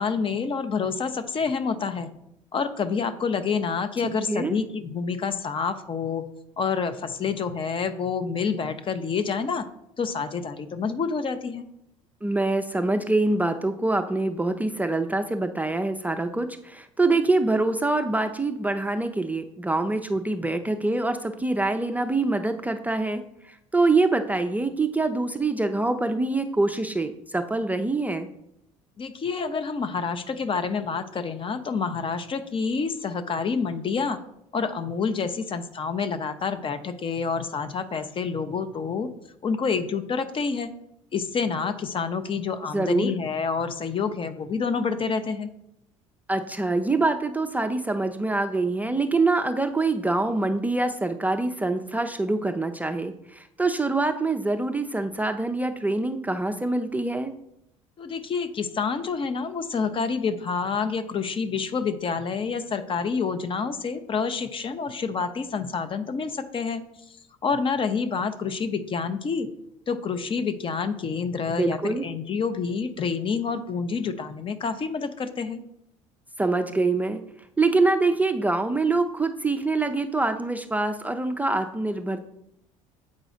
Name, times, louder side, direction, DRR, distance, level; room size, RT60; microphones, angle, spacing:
voice 1, 0.0-2.1 2.5-6.3 6.6-9.6 10.0-11.7 29.0-34.2 34.5-39.1 39.4-40.7 41.1-45.5 58.0-66.8 67.1-67.2 67.4-69.5 69.9-75.6, left 5 dB, 30° left, 10 dB, 0.7 m, -28 dB
voice 2, 12.2-28.3 42.7-43.1 46.3-57.3 71.5-72.0 76.4-77.2 77.6-82.2, right 2 dB, 10° right, 6 dB, 0.5 m, -25 dB
7.5 x 4.9 x 3.7 m, 0.78 s
figure-of-eight pair, 60°, 17 cm